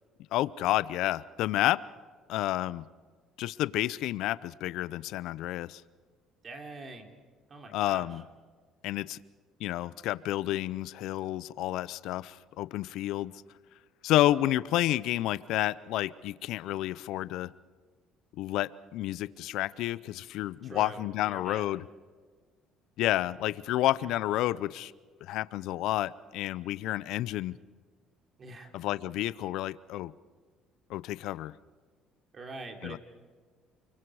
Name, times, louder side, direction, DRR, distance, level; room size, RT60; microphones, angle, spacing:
voice 1, 0.3-1.8 2.3-2.8 3.4-5.8 7.7-8.2 8.8-9.2 9.6-13.3 14.0-17.5 18.4-21.8 23.0-24.9 25.2-27.5 28.7-30.1 30.9-31.5 32.8-33.0, left 15 dB, 75° left, 18 dB, 0.5 m, -30 dB
voice 2, 6.4-7.1 7.5-8.2 20.6-21.7 24.0-24.1 28.4-28.7 32.3-33.0, right 3 dB, 35° right, 4 dB, 3.3 m, -44 dB
29.5 x 23.5 x 4.8 m, 1.5 s
cardioid pair, 115°, 0 cm